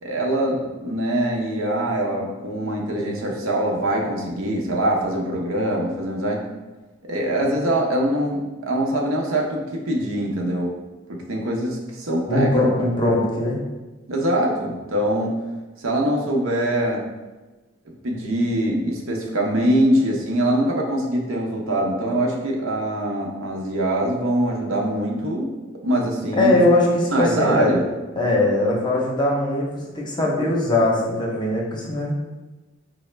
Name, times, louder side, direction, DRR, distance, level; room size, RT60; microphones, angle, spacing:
voice 1, 0.0-6.4 7.1-10.7 11.1-12.7 14.1-15.3 15.8-17.0 18.0-25.5 25.8-26.6 27.1-27.9, right 1 dB, 75° right, 0 dB, 0.7 m, -23 dB
voice 2, 12.3-13.6 26.3-27.7 28.2-32.1, left 2 dB, 20° left, -2 dB, 0.6 m, -20 dB
4.7 x 2.0 x 3.2 m, 1.2 s
head